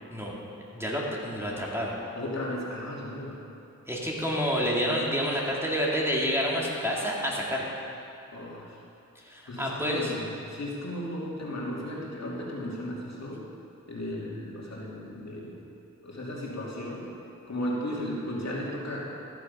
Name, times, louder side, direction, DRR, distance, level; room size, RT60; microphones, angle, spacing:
voice 1, 0.7-1.9 3.9-7.7 9.3-10.1, equal, 10° right, -4 dB, 2.4 m, -28 dB
voice 2, 2.1-3.4 8.3-8.8 9.5-13.4 13.9-15.6 16.0-17.1 17.5-19.1, left 1 dB, 55° left, -4 dB, 2.7 m, -35 dB
14.0 x 7.3 x 5.5 m, 2.7 s
cardioid pair, 45°, 32 cm